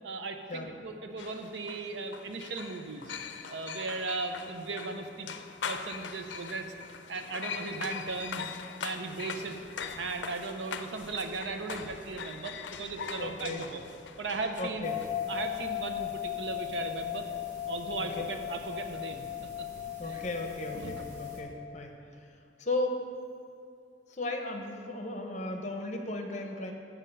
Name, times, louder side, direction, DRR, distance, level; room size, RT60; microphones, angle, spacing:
voice 1, 0.0-3.2 3.5-5.3 5.6-6.7 7.1-8.5 8.8-9.6 9.9-13.8 14.2-15.0 15.3-17.3 17.7-19.3 19.6-19.7 20.0-20.2 20.7-21.0, right 3 dB, 85° right, 6 dB, 0.7 m, -37 dB
sound 1, 1.2-15.1, left 6 dB, 85° left, 0.5 m, -41 dB
voice 2, 13.2-13.7 14.6-14.9 18.0-18.1 20.0-22.2 22.6-23.0 24.1-26.7, left 2 dB, 40° left, 3 dB, 0.9 m, -35 dB
sound 2, 14.8-21.4, left 11 dB, 45° right, 1.1 m, -37 dB
7.4 x 7.1 x 5.5 m, 2.4 s
head